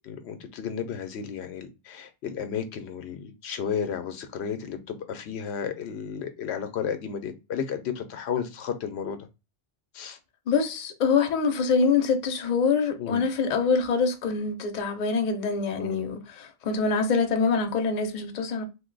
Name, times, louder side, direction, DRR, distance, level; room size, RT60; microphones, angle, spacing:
voice 1, 0.0-9.2 9.9-10.2 13.0-13.2 15.8-16.0, left 7 dB, 85° left, 0.9 m, -33 dB
voice 2, 10.5-18.6, left 5 dB, 50° left, 0.7 m, -25 dB
2.6 x 2.2 x 3.8 m
omnidirectional pair, 1.1 m